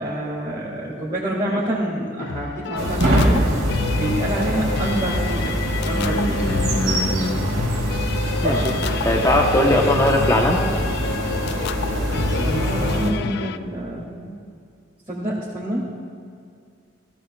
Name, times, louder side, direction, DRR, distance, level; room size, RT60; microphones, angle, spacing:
voice 1, 0.0-3.5 3.9-5.5 5.8-6.5 9.0-9.1 12.4-14.1 15.1-15.9, right 1 dB, 25° right, -9 dB, 2.3 m, -27 dB
sound 1, 2.2-13.6, left 6 dB, 55° left, 0.3 m, -29 dB
sound 2, 2.8-13.1, right 1 dB, 70° right, 2.4 m, -23 dB
voice 2, 5.9-7.4 8.4-8.7 9.0-10.6 14.3-14.4, left 1 dB, 15° left, 1 dB, 1.1 m, -21 dB
15.5 x 15.5 x 2.5 m, 2.3 s
head